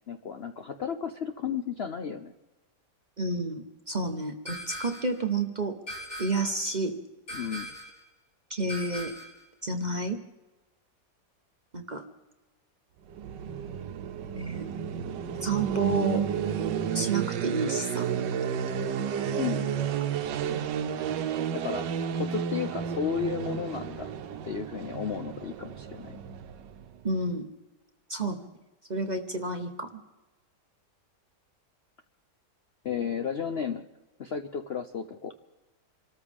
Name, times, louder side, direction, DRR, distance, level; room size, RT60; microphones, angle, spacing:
voice 1, 0.0-2.3 7.3-7.7 19.3-19.7 21.1-21.2 21.5-21.8 22.1-24.1 24.4-26.1 32.8-33.9 34.2-35.3, left 7 dB, 55° left, 8 dB, 0.7 m, -33 dB
voice 2, 3.2-5.8 6.2-7.0 8.5-9.1 9.6-10.2 11.7-12.0 14.3-14.7 15.4-16.2 16.9-18.3 18.7-18.8 20.5-20.7 27.0-27.5 28.1-28.4 28.9-29.9, right 2 dB, 30° right, 5 dB, 0.9 m, -30 dB
sound 1, 4.5-5.2 5.9-6.6 7.3-8.0 8.7-9.4, equal, 40° left, 3.9 m, -40 dB
sound 2, 13.1-27.0, right 8 dB, 80° right, 1.4 m, -32 dB
27.0 x 13.5 x 3.5 m, 1.1 s
omnidirectional pair, 1.9 m